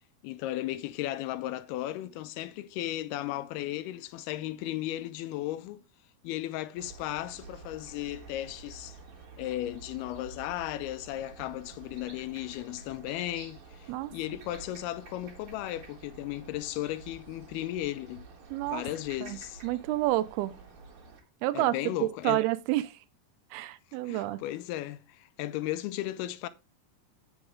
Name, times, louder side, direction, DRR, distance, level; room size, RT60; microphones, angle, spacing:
voice 1, 0.2-5.8 6.2-9.0 9.4-18.3 18.7-19.6 21.5-22.4 24.1-26.5, left 14 dB, 85° left, 2.5 m, -35 dB
sound 1, 6.8-21.2, right 4 dB, 55° right, 1.6 m, -50 dB
voice 2, 18.5-18.8 19.2-19.4 19.6-20.5 21.4-21.7 22.2-22.8 23.5-24.4, right 16 dB, 80° right, 2.4 m, -29 dB
7.8 x 7.3 x 3.6 m
omnidirectional pair, 4.6 m